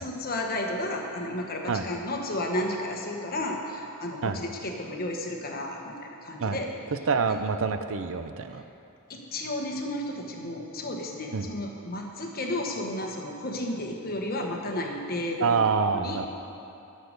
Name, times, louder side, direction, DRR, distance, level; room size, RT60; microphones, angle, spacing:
voice 1, 0.0-6.7 9.1-15.6 15.9-16.3, left 1 dB, 45° left, 1 dB, 1.2 m, -32 dB
voice 2, 7.1-8.6 11.3-11.5 15.4-16.3, right 5 dB, 65° right, 9 dB, 0.5 m, -26 dB
11.5 x 6.6 x 6.6 m, 2.8 s
head